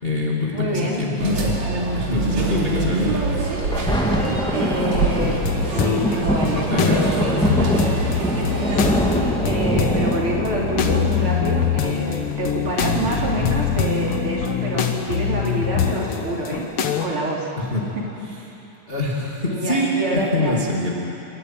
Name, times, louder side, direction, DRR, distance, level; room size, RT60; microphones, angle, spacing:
voice 1, 0.0-1.6 1.9-3.1 6.4-7.7 17.6-17.9 18.9-20.9, left 2 dB, 20° left, -4 dB, 2.4 m, -24 dB
voice 2, 0.5-1.0 1.7-3.2 4.5-5.4 5.7-7.4 8.1-16.6 17.0-17.5 17.9-18.1 19.5-20.5, right 1 dB, 45° right, -4 dB, 4.1 m, -27 dB
sound 1, 1.2-9.0, right 2 dB, 65° right, 4.0 m, -26 dB
Thunder, 3.4-14.4 15.0-15.1, equal, ahead, 1.3 m, -24 dB
sound 2, 5.2-6.1 6.5-17.1, left 7 dB, 55° left, 1.9 m, -24 dB
28.5 x 13.5 x 9.2 m, 2.9 s
omnidirectional pair, 3.4 m